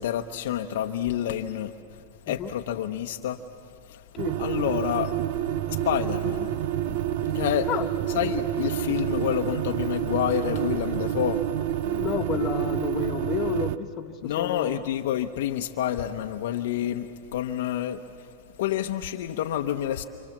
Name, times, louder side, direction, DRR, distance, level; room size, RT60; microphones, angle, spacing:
voice 1, 0.0-1.7 2.3-3.4 4.4-5.1 5.7-6.5 7.2-7.7 8.1-11.4 14.2-18.0 18.6-20.0, left 11 dB, 65° left, 5 dB, 1.0 m, -28 dB
sound 1, 4.2-13.8, right 12 dB, 60° right, 0.8 m, -28 dB
voice 2, 11.8-14.8, left 10 dB, 35° left, 4 dB, 1.4 m, -31 dB
28.5 x 27.0 x 7.4 m, 2.5 s
hypercardioid pair, 125°, 0 cm